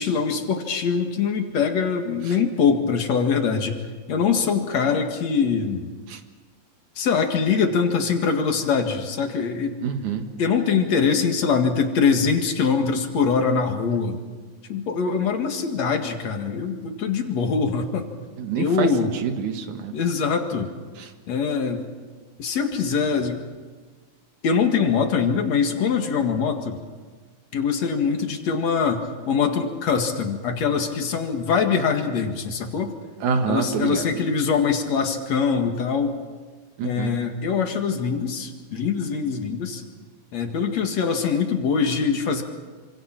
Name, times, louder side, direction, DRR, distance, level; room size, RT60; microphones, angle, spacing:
voice 1, 0.0-3.7 4.1-5.9 7.0-9.8 10.4-14.2 14.7-18.1 18.6-19.1 19.9-20.7 21.3-21.8 22.4-23.5 24.4-26.8 27.5-32.9 33.5-36.2 36.8-39.8 40.3-42.4, left 5 dB, 65° left, 4 dB, 3.1 m, -23 dB
voice 2, 9.8-10.3 18.4-19.9 33.2-34.1 36.8-37.1, right 6 dB, 85° right, 6 dB, 3.1 m, -26 dB
27.0 x 26.0 x 6.0 m, 1.4 s
omnidirectional pair, 3.4 m